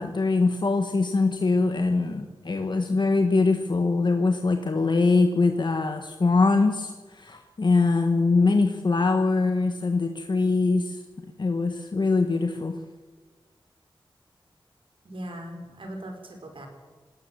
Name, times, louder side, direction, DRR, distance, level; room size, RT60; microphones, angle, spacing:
voice 1, 0.0-11.0 11.4-12.8, left 3 dB, 55° left, 5 dB, 1.5 m, -23 dB
voice 2, 15.0-16.7, right 1 dB, 75° right, 4 dB, 5.0 m, -39 dB
19.0 x 18.5 x 7.5 m, 1.4 s
wide cardioid pair, 75°, 9 cm